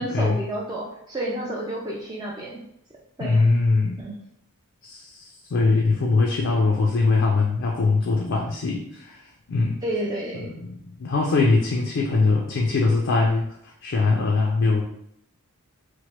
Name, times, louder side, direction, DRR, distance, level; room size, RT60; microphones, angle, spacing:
voice 1, 0.0-2.6 3.2-3.5 4.0-4.2 9.8-10.5, right 1 dB, 20° right, -4 dB, 0.4 m, -30 dB
voice 2, 3.2-4.0 4.8-9.2 9.5-9.8 10.4-13.5 13.8-14.8, left 3 dB, 60° left, -1 dB, 0.4 m, -22 dB
3.0 x 2.1 x 2.9 m, 0.73 s
head